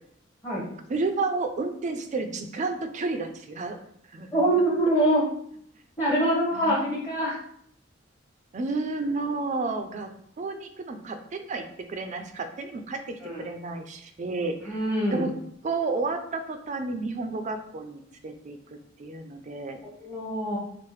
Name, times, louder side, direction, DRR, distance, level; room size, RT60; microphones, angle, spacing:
voice 1, 0.9-3.8 4.1-4.4 6.5-6.8 8.5-10.1 10.4-14.8 15.1-15.3 15.6-19.8, right 3 dB, 40° right, 7 dB, 0.4 m, -31 dB
voice 2, 4.3-5.2 6.0-7.4 13.2-13.5 14.6-15.3 19.8-20.6, right 1 dB, 15° left, -7 dB, 0.9 m, -24 dB
4.6 x 2.1 x 3.1 m, 0.68 s
head